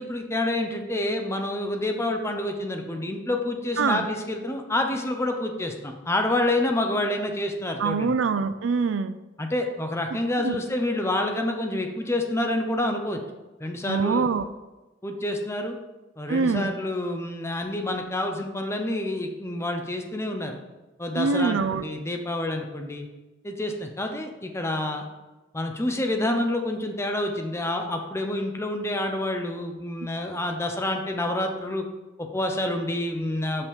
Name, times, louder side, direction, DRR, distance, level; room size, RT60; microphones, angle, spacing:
voice 1, 0.0-8.1 9.4-13.2 13.6-14.3 15.0-15.8 16.2-20.6 21.0-23.1 23.4-25.0 25.5-31.8 32.2-33.7, left 1 dB, 15° left, 4 dB, 0.8 m, -28 dB
voice 2, 7.8-9.2 10.4-10.6 13.9-14.5 16.3-16.7 21.1-21.9, right 4 dB, 75° right, 13 dB, 0.4 m, -24 dB
5.8 x 5.3 x 6.3 m, 1.1 s
head